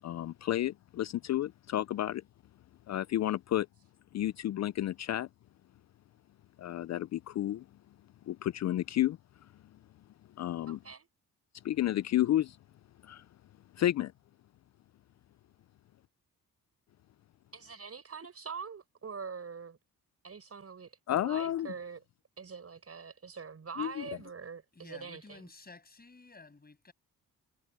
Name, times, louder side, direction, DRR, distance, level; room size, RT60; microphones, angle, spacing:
voice 1, 0.0-2.2 2.9-3.7 4.1-5.3 6.6-7.6 8.3-9.2 10.4-10.8 11.6-12.6 13.0-13.2 13.8-14.1 21.1-21.7 23.8-24.0, left 13 dB, 55° left, 0.4 m, -31 dB
voice 2, 10.7-11.1 17.5-19.8 20.2-22.0 22.4-25.5, right 5 dB, 45° right, 6.3 m, -44 dB
voice 3, 24.7-26.9, left 3 dB, 30° left, 7.8 m, -53 dB
cardioid pair, 75°, 33 cm